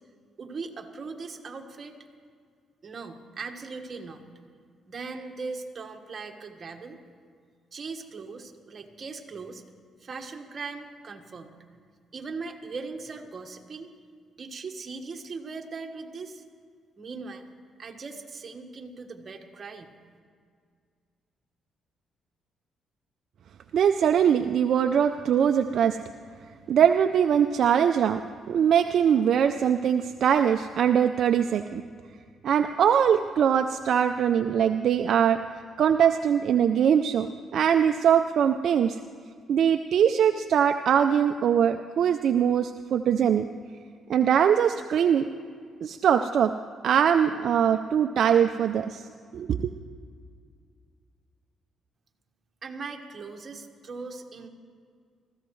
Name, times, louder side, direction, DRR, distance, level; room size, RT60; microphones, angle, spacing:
voice 1, 0.4-2.0 2.8-4.2 4.9-7.0 7.7-9.6 10.0-11.5 12.1-13.9 14.4-16.4 17.0-17.5 17.8-19.9 52.6-54.5, right 4 dB, 40° right, 3 dB, 1.4 m, -39 dB
voice 2, 23.7-26.0 26.7-28.2 28.5-31.8 32.4-35.4 35.8-37.3 37.5-39.0 39.5-43.5 44.1-45.2 45.8-46.5 46.8-49.0 49.3-49.7, right 8 dB, 65° right, 7 dB, 0.4 m, -22 dB
21.0 x 14.5 x 3.2 m, 2.1 s
cardioid pair, 90°, 0 cm